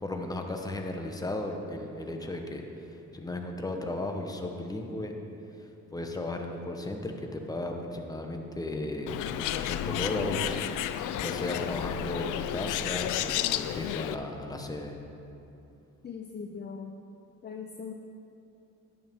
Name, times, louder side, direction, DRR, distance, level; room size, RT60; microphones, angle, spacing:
voice 1, 0.0-5.1 5.6-10.7 11.2-15.0, left 1 dB, 10° left, 3 dB, 1.0 m, -35 dB
Bird, 9.1-14.2, left 11 dB, 85° left, 0.5 m, -31 dB
voice 2, 16.0-17.0 17.4-17.9, left 6 dB, 35° left, 3 dB, 0.6 m, -40 dB
11.0 x 9.3 x 3.6 m, 2.8 s
cardioid pair, 90°, 30 cm